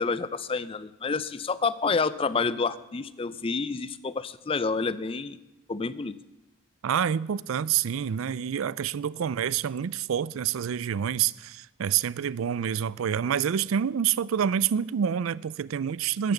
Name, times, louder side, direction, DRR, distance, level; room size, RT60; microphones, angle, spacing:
voice 1, 0.0-5.4 5.7-6.2, left 4 dB, 25° left, 0.4 m, -29 dB
voice 2, 6.8-16.3, right 8 dB, 85° right, 0.4 m, -27 dB
14.0 x 10.0 x 7.1 m
head